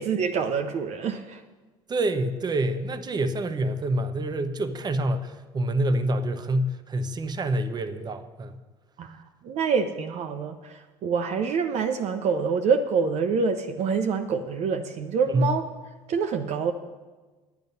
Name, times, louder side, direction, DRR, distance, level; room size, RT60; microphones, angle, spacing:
voice 1, 0.0-1.4 9.0-15.7 16.1-16.7, right 5 dB, 55° right, 7 dB, 0.8 m, -26 dB
voice 2, 1.9-8.6 15.3-15.5, right 1 dB, 30° right, 10 dB, 1.0 m, -27 dB
10.5 x 9.3 x 5.5 m, 1.3 s
hypercardioid pair, 70°, 14 cm